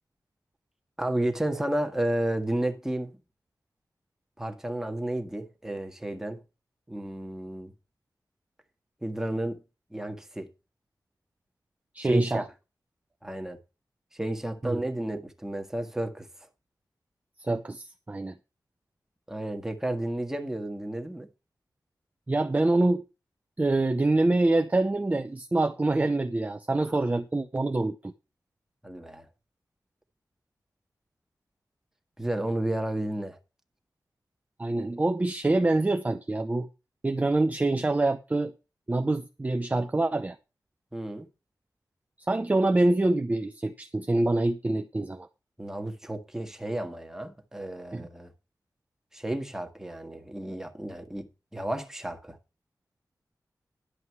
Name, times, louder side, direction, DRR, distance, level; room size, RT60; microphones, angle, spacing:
voice 1, 1.0-3.2 4.4-6.4 6.9-7.7 9.0-9.6 9.9-10.5 12.0-12.4 13.2-13.6 14.1-16.3 19.3-21.3 26.9-27.0 28.8-29.3 32.2-33.4 40.9-41.3 45.6-48.3 49.1-51.3 51.5-52.4, right 1 dB, 5° right, 1.6 m, -32 dB
voice 2, 11.9-12.4 14.6-14.8 17.4-18.3 22.3-23.0 23.6-28.1 34.6-36.7 37.0-38.5 38.9-40.4 42.3-45.3 47.9-48.1, right 2 dB, 20° right, 0.7 m, -25 dB
11.5 x 7.8 x 4.6 m
wide cardioid pair, 125°, 7 cm